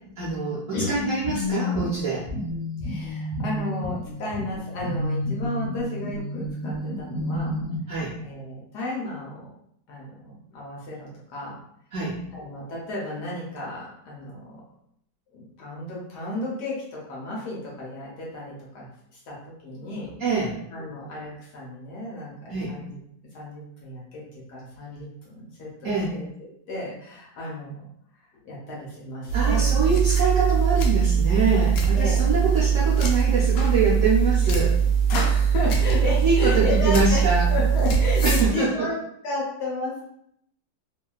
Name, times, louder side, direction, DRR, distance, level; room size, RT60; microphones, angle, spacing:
voice 1, 0.2-2.2 7.9-8.1 11.9-12.2 20.2-20.5 22.5-22.7 25.8-26.1 29.3-34.8 36.2-37.5 38.2-38.9, right 3 dB, 65° right, -7 dB, 0.8 m, -24 dB
sound 1, 0.9-7.8, left 1 dB, 30° left, 0.7 m, -30 dB
voice 2, 2.8-7.6 8.2-9.5 9.9-11.6 12.3-14.6 15.3-20.1 20.7-23.0 23.3-24.2 24.5-26.2 26.7-27.8 28.4-30.0 31.9-32.3 35.1-40.0, left 2 dB, 65° left, -5 dB, 1.3 m, -33 dB
sound 2, 29.3-38.5, right 7 dB, 90° left, 0.7 m, -21 dB
2.9 x 2.6 x 2.3 m, 0.71 s
omnidirectional pair, 2.1 m